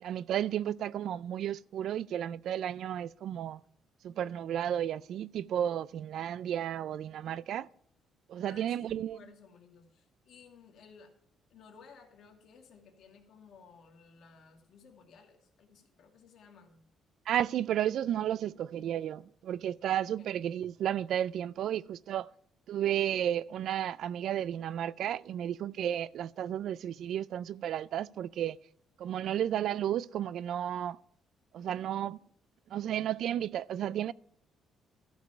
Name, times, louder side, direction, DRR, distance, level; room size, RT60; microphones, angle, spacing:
voice 1, 0.0-3.6 4.0-7.7 8.3-9.2 17.3-22.3 22.7-28.6 29.0-31.0 31.5-32.2 32.7-34.1, right 10 dB, 65° right, 0.3 m, -33 dB
voice 2, 8.4-11.1 11.5-16.8 20.0-20.3, left 5 dB, 60° left, 2.4 m, -57 dB
13.5 x 5.2 x 6.9 m
cardioid pair, 135°, 0 cm